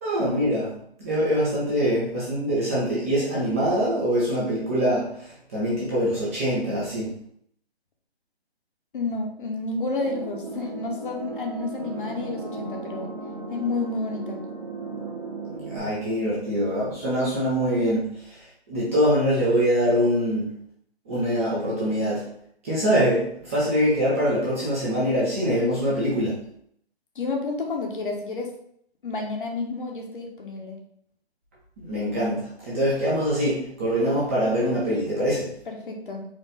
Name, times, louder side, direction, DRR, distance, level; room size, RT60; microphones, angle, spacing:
voice 1, 0.0-7.2 15.5-20.6 21.1-22.3 22.6-26.4 31.8-35.5, equal, 15° right, -8 dB, 0.6 m, -24 dB
voice 2, 8.9-13.1 13.5-14.4 27.1-28.5 29.0-30.8 35.7-36.3, left 3 dB, 50° left, 1 dB, 1.1 m, -30 dB
sound 1, 10.0-15.8, right 2 dB, 45° right, 1.0 m, -36 dB
4.4 x 2.4 x 3.8 m, 0.69 s
figure-of-eight pair, 155°, 32 cm